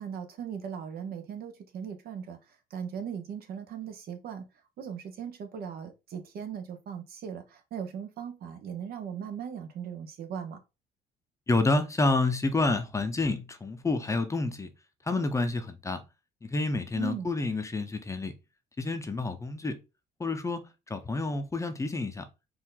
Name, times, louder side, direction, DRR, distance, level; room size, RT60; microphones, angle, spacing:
voice 1, 0.0-2.4 2.7-4.5 4.8-10.6 16.9-17.3, right 7 dB, 65° right, 0.9 m, -38 dB
voice 2, 11.5-14.7 15.1-16.0 16.4-18.3 18.8-19.8 20.2-20.6 20.9-22.2, left 3 dB, 15° left, 0.7 m, -28 dB
4.6 x 2.6 x 3.7 m
cardioid pair, 110°, 17 cm